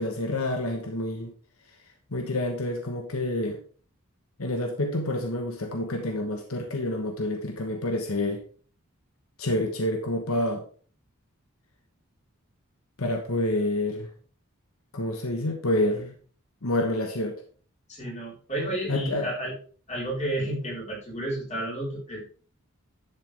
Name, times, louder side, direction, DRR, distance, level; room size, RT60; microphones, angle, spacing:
voice 1, 0.0-1.3 2.1-3.6 4.4-8.4 9.4-10.6 13.0-14.1 14.9-16.1 16.6-17.4 18.9-19.3, left 1 dB, 80° left, 4 dB, 1.2 m, -28 dB
voice 2, 17.9-19.5 19.9-22.3, right 1 dB, 30° left, -4 dB, 4.5 m, -31 dB
11.0 x 6.7 x 3.4 m, 0.43 s
head